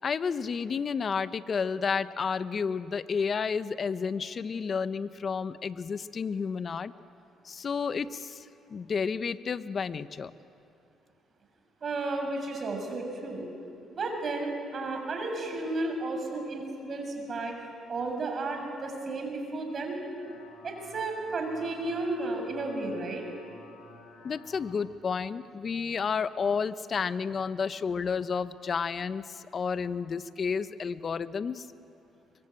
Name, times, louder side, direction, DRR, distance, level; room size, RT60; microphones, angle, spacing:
voice 1, 0.0-6.9 7.4-10.3 24.2-31.7, left 5 dB, 45° left, 13 dB, 1.0 m, -31 dB
voice 2, 11.8-13.4 13.9-17.5 17.9-20.0 20.6-23.2, right 2 dB, 45° right, 3 dB, 6.7 m, -33 dB
sound 1, 19.9-24.8, left 4 dB, 80° left, 3.7 m, -53 dB
25.0 x 23.5 x 9.0 m, 2.6 s
supercardioid pair, 75°, 0 cm